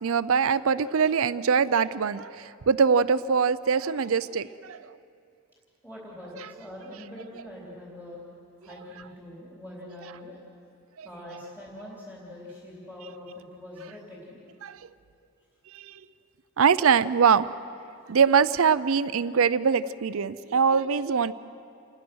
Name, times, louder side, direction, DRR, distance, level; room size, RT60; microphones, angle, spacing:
voice 1, 0.0-4.8 11.0-11.1 14.6-14.8 15.7-15.9 16.6-17.5 18.1-21.3, right 6 dB, 70° right, 14 dB, 0.5 m, -23 dB
voice 2, 5.8-8.2 8.6-10.4 11.0-14.4, left 1 dB, 10° left, -5 dB, 3.5 m, -43 dB
28.0 x 20.0 x 6.3 m, 2.5 s
head